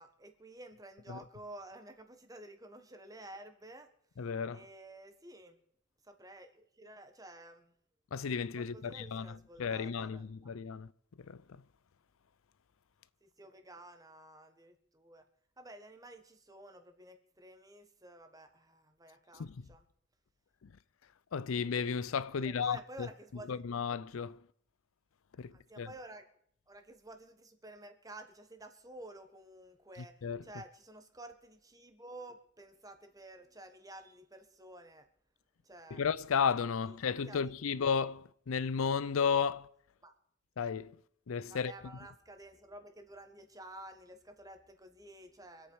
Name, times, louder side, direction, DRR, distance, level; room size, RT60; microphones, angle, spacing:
voice 1, 0.0-3.9 4.5-5.6 6.1-7.7 8.6-10.5 13.2-15.2 15.6-19.8 22.4-23.6 25.7-26.3 26.7-30.1 30.4-35.1 35.7-36.0 36.8-37.4 40.0-40.1 41.5-45.7, right 1 dB, 15° right, 1.3 m, -52 dB
voice 2, 4.2-4.6 8.1-10.9 11.3-11.4 19.4-19.7 21.3-23.1 23.5-24.4 25.4-25.9 30.2-30.5 35.9-39.7 40.6-40.9 41.3-41.7, left 6 dB, 75° left, 0.5 m, -33 dB
25.5 x 8.5 x 4.8 m
head